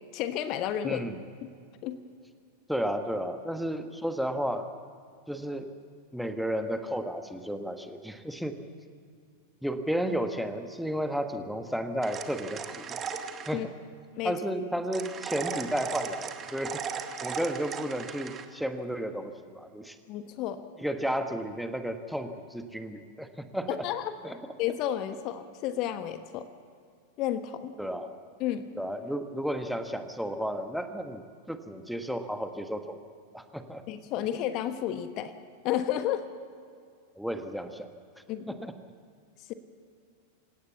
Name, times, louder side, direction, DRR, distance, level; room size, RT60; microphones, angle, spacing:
voice 1, 0.1-1.0 1.4-1.5 1.8-2.0 13.5-13.7 14.2-14.4 20.1-20.6 23.8-24.1 24.6-26.5 27.2-27.7 28.4-28.7 33.9-35.3 35.6-36.3 38.3-38.5 39.5-39.6, left 11 dB, 40° left, 10 dB, 1.2 m, -31 dB
voice 2, 0.8-1.2 2.7-4.7 5.3-5.7 6.1-8.6 9.6-13.0 13.5-13.7 14.2-16.8 17.2-20.0 20.8-23.8 24.2-24.5 27.8-28.1 28.7-31.2 31.5-33.0 33.3-33.8 37.1-37.9 38.5-38.7, equal, ahead, 7 dB, 1.5 m, -33 dB
sound 1, 12.0-13.6 14.9-18.4, right 6 dB, 25° right, 1.5 m, -37 dB
27.5 x 17.0 x 7.1 m, 2.2 s
figure-of-eight pair, 90°, 0 cm